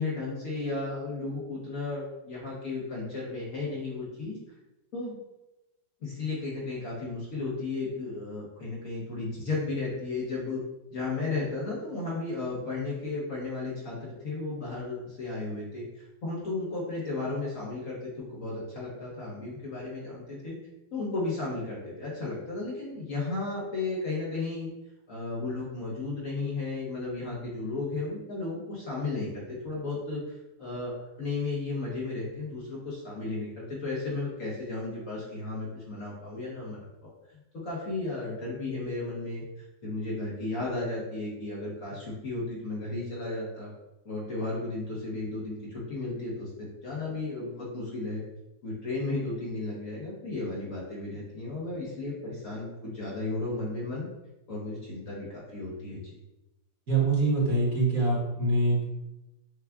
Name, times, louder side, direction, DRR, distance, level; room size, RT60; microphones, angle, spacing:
voice 1, 0.0-4.4 4.9-5.2 6.0-10.6 10.9-20.6 20.9-24.7 25.1-39.4 39.8-43.7 44.0-46.5 46.8-48.2 48.6-54.1 54.5-56.1, left 3 dB, 55° left, -6 dB, 1.2 m, -34 dB
voice 2, 56.9-58.8, right 2 dB, 50° right, -5 dB, 1.5 m, -24 dB
6.8 x 2.4 x 2.3 m, 0.97 s
omnidirectional pair, 2.0 m